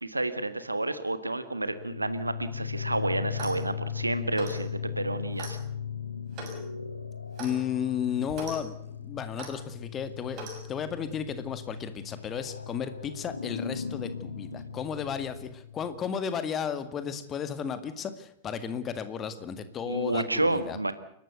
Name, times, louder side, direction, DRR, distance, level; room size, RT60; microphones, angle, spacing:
voice 1, 0.0-5.6 14.5-14.6 19.9-20.9, right 2 dB, 85° right, 12 dB, 1.5 m, -30 dB
sound 1, 1.5-16.1, left 7 dB, 80° left, 1.2 m, -38 dB
Clock, 3.3-3.7 4.3-4.6 5.4-5.6 6.3-6.6 7.4-7.6 8.3-8.6 9.4-9.5 10.3-10.6, right 3 dB, 40° right, 6.6 m, -40 dB
voice 2, 7.4-20.9, left 7 dB, 25° left, 11 dB, 2.0 m, -34 dB
29.5 x 12.0 x 8.1 m, 0.70 s
figure-of-eight pair, 90°, 0 cm